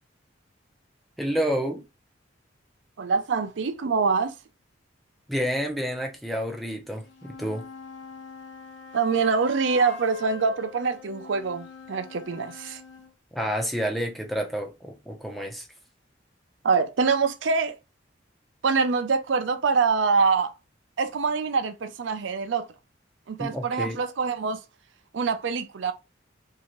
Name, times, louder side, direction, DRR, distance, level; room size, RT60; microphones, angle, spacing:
voice 1, 1.2-1.8 5.3-7.6 13.3-15.7 23.4-24.0, equal, ahead, 0.6 m, -29 dB
voice 2, 3.0-4.3 8.9-12.8 16.6-17.8 18.6-20.6 21.0-22.7 23.3-24.6 25.1-25.9, right 5 dB, 70° right, 0.5 m, -25 dB
sound 1, 6.9-13.1, left 3 dB, 70° left, 0.7 m, -43 dB
3.3 x 2.7 x 3.0 m
head